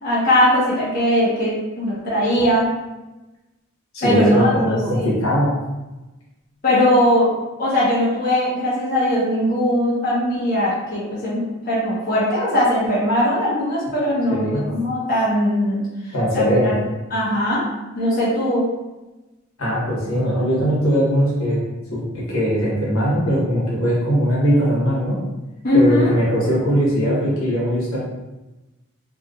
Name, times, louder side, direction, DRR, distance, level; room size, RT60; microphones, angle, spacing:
voice 1, 0.0-2.7 4.0-5.1 6.6-7.3 7.6-15.8 16.3-16.8 17.1-17.6 17.9-18.7 25.6-26.1, left 1 dB, 45° left, -9 dB, 1.2 m, -20 dB
voice 2, 3.9-5.5 14.3-14.6 16.1-16.7 19.6-21.6 21.9-22.0 22.3-25.2 25.7-28.0, equal, 85° left, -7 dB, 1.3 m, -20 dB
3.4 x 2.9 x 2.5 m, 1.1 s
head